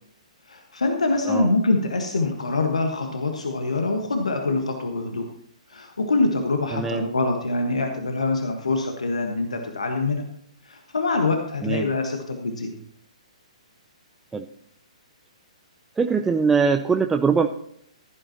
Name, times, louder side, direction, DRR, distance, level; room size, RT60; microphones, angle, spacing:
voice 1, 0.5-5.3 5.7-10.2 10.6-12.7, left 3 dB, 70° left, 4 dB, 1.4 m, -24 dB
voice 2, 6.7-7.1 11.6-11.9 14.3-14.5 16.0-17.5, right 5 dB, 10° right, 6 dB, 0.4 m, -22 dB
16.0 x 11.5 x 2.9 m, 0.67 s
figure-of-eight pair, 125°, 4 cm